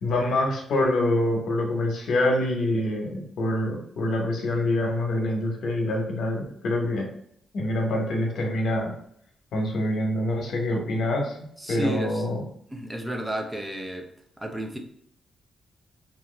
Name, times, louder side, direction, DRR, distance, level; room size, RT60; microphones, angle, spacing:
voice 1, 0.0-7.1 7.5-8.9 9.5-11.4 11.7-12.4, left 1 dB, 75° left, 1 dB, 0.8 m, -25 dB
voice 2, 11.6-12.3 12.7-14.1 14.4-14.8, equal, 10° right, 3 dB, 0.5 m, -31 dB
2.9 x 2.4 x 3.1 m, 0.69 s
cardioid pair, 115°, 0 cm